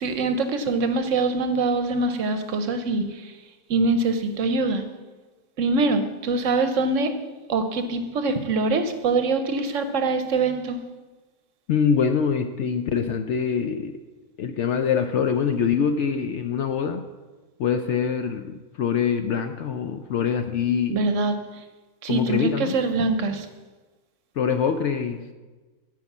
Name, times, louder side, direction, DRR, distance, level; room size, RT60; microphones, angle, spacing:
voice 1, 0.0-3.3 3.7-4.8 5.6-7.1 7.5-10.8 20.9-21.3 22.0-23.5, right 3 dB, 65° right, 8 dB, 1.0 m, -24 dB
voice 2, 11.7-14.0 14.4-17.0 17.6-21.0 22.1-22.8 24.4-25.3, left 7 dB, 65° left, 7 dB, 0.7 m, -24 dB
9.5 x 4.9 x 7.1 m, 1.3 s
omnidirectional pair, 1.6 m